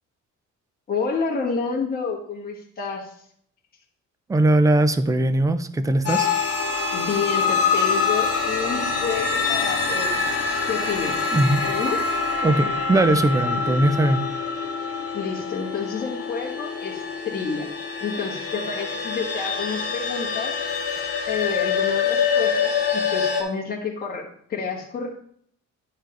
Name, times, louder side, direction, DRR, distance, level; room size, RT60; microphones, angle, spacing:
voice 1, 0.9-3.1 6.9-10.2 10.7-11.3 11.6-12.0 15.1-17.7 18.0-20.6 21.3-25.1, left 5 dB, 30° left, -2 dB, 1.5 m, -29 dB
voice 2, 4.3-6.3 11.3-11.6 12.4-14.3, right 1 dB, 10° right, 11 dB, 0.3 m, -20 dB
sound 1, 6.1-23.4, left 5 dB, 50° left, 1.5 m, -25 dB
10.0 x 4.7 x 4.5 m, 0.63 s
cardioid pair, 175°, 31 cm